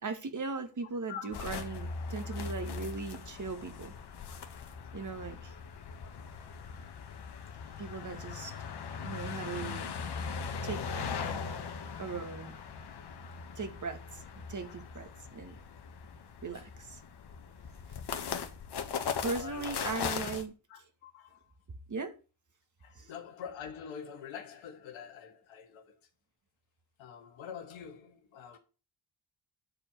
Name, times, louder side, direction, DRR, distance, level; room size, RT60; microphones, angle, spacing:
voice 1, 0.0-3.9 4.9-5.5 7.8-8.6 9.0-9.9 10.6-11.1 12.0-12.5 13.6-15.5 16.4-17.0 19.2-20.5 21.9-22.1 23.0-23.1, right 4 dB, 40° right, 2.0 m, -38 dB
voice 2, 1.1-1.6 2.3-2.7 4.3-4.5 6.0-6.3 9.3-9.4 13.2-13.4 14.7-15.0 15.5-15.6 16.5-16.7 17.4-17.5 19.3-20.2 20.7-21.5 22.8-26.1 27.0-28.6, left 7 dB, 80° left, 1.8 m, -47 dB
sound 1, 1.3-20.4, left 6 dB, 60° left, 1.6 m, -40 dB
9.9 x 4.5 x 6.9 m
hypercardioid pair, 45°, 46 cm